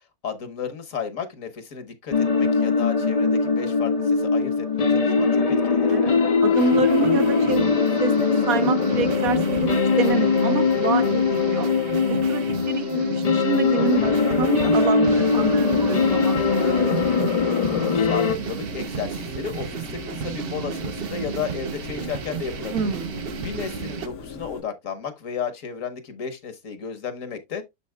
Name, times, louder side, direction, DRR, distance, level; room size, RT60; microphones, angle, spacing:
voice 1, 0.2-5.9 18.0-22.9 23.4-27.7, left 7 dB, 65° left, 1.5 m, -33 dB
sound 1, 2.1-18.4, left 4 dB, 45° left, 0.5 m, -21 dB
voice 2, 5.9-11.7 12.0-16.9 22.7-23.1, right 6 dB, 75° right, 1.6 m, -27 dB
sound 2, 6.5-24.1, right 7 dB, 50° right, 0.8 m, -34 dB
sound 3, 18.3-24.6, left 6 dB, 85° left, 1.8 m, -39 dB
11.5 x 4.1 x 2.3 m
omnidirectional pair, 1.5 m